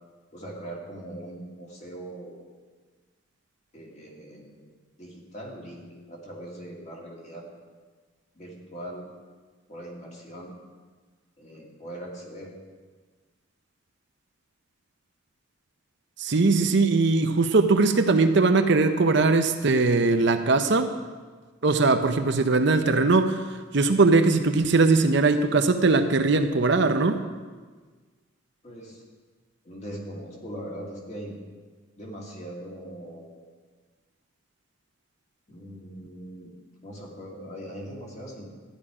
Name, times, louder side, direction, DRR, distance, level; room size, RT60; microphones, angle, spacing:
voice 1, 0.3-2.4 3.7-4.7 5.0-7.4 8.3-9.1 9.7-10.5 11.4-12.5 28.6-29.0 29.6-31.4 32.0-33.3 35.5-36.5 36.8-38.5, right 1 dB, 35° left, -2 dB, 2.2 m, -40 dB
voice 2, 16.2-20.9 21.6-27.2, right 3 dB, 60° right, 8 dB, 0.7 m, -20 dB
13.5 x 10.0 x 4.9 m, 1.4 s
head